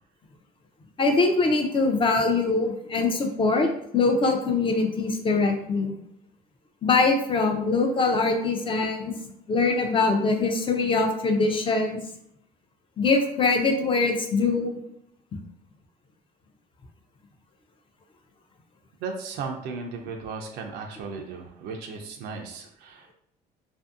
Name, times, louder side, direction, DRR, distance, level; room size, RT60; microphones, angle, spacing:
voice 1, 1.0-5.9 6.8-9.1 9.5-12.0 13.0-14.8, left 3 dB, 30° left, 4 dB, 0.4 m, -23 dB
voice 2, 19.0-23.1, right 4 dB, 80° right, 2 dB, 0.4 m, -36 dB
2.6 x 2.5 x 2.4 m, 0.72 s
cardioid pair, 110°, 17 cm